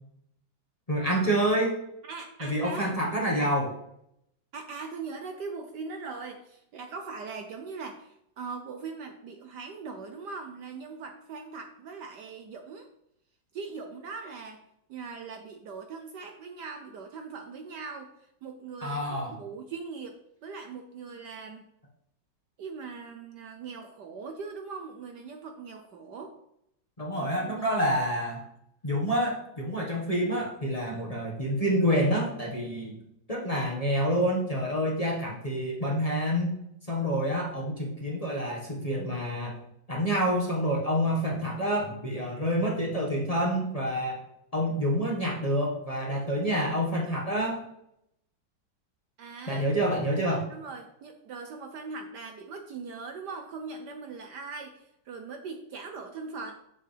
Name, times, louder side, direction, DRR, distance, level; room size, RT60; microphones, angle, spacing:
voice 1, 0.9-1.7 2.4-3.7 18.8-19.3 27.0-28.4 28.8-33.0 33.3-36.5 36.9-39.5 39.9-44.2 44.5-47.6 49.5-50.5, equal, 20° left, -3 dB, 1.3 m, -28 dB
voice 2, 2.1-3.0 4.5-12.9 13.5-14.6 14.9-18.1 18.4-21.6 22.6-26.3 27.1-27.7 49.2-49.7 50.5-56.5, right 4 dB, 65° right, 5 dB, 1.2 m, -40 dB
8.1 x 7.5 x 3.4 m, 0.77 s
omnidirectional pair, 2.2 m